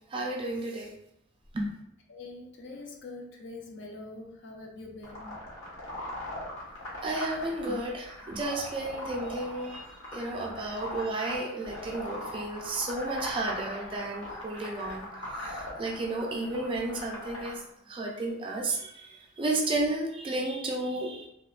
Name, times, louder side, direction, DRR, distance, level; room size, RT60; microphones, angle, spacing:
voice 1, 0.1-0.9 1.5-1.7 7.0-9.9 10.1-15.0 15.4-19.1 19.4-21.3, right 2 dB, 25° right, 0 dB, 0.3 m, -32 dB
voice 2, 2.1-5.4, left 2 dB, 60° left, 0 dB, 0.5 m, -44 dB
sound 1, 5.0-17.5, left 1 dB, 80° left, 0.9 m, -40 dB
2.8 x 2.0 x 2.4 m, 0.78 s
head